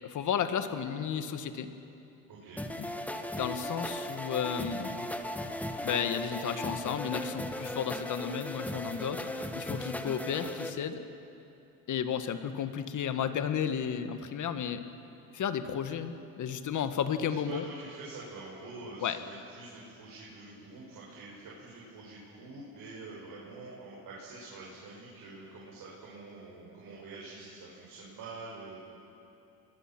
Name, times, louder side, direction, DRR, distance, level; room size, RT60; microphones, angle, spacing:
voice 1, 0.0-1.7 3.1-5.0 5.8-11.0 11.9-14.8 15.3-17.6 19.0-19.2, left 8 dB, 45° left, 9 dB, 1.7 m, -33 dB
voice 2, 2.3-2.6 17.3-28.8, right 3 dB, 50° right, -5 dB, 6.7 m, -46 dB
sound 1, 2.6-10.7, left 1 dB, 5° left, 1.7 m, -37 dB
28.5 x 21.5 x 6.1 m, 2.8 s
hypercardioid pair, 80°, 42 cm